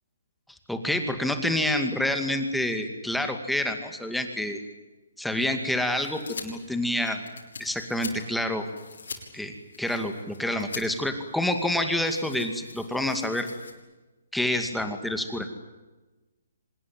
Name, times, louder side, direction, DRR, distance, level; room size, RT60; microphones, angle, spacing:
voice 1, 0.7-4.6 5.2-7.2 7.6-8.7 9.3-13.5 14.3-15.5, left 1 dB, ahead, 6 dB, 2.2 m, -28 dB
sound 1, 5.3-13.7, left 4 dB, 75° left, 6.7 m, -44 dB
25.5 x 21.0 x 9.4 m, 1.1 s
hypercardioid pair, 150°, 0 cm